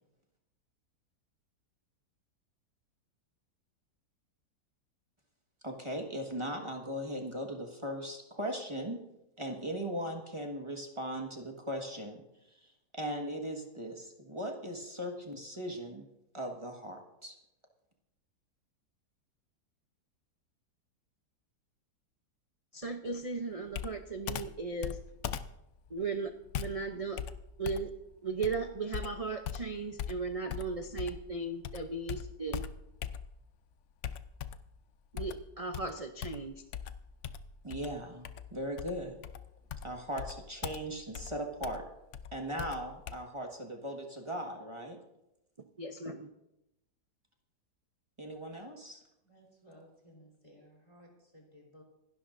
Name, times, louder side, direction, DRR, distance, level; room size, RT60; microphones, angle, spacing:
voice 1, 5.6-9.0 9.4-12.2 12.9-16.1 16.3-17.3 37.6-39.2 39.8-41.8 42.3-45.0 48.2-49.0, equal, 20° right, 1 dB, 1.5 m, -38 dB
voice 2, 22.7-25.0 25.9-26.3 26.6-27.2 27.6-27.9 28.2-32.6 35.1-36.5 45.8-46.3, right 3 dB, 60° right, 5 dB, 0.3 m, -36 dB
Computer keyboard, 23.7-31.3 31.6-33.5 34.0-34.8 35.2-43.2, left 8 dB, 65° left, 0.7 m, -41 dB
voice 3, 49.2-51.8, equal, 15° left, -1 dB, 3.9 m, -58 dB
26.0 x 12.0 x 2.6 m, 0.88 s
omnidirectional pair, 1.8 m